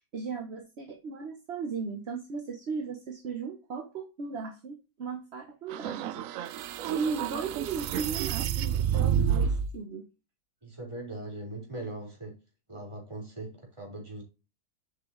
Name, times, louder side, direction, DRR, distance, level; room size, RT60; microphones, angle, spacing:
voice 1, 0.1-6.0 6.3-10.1, right 5 dB, 40° right, 1.1 m, -36 dB
sound 1, 5.7-9.7, right 8 dB, 80° right, 0.7 m, -29 dB
voice 2, 10.6-12.4 12.7-14.2, right 2 dB, 15° right, 4.0 m, -40 dB
7.9 x 5.9 x 3.1 m
omnidirectional pair, 2.0 m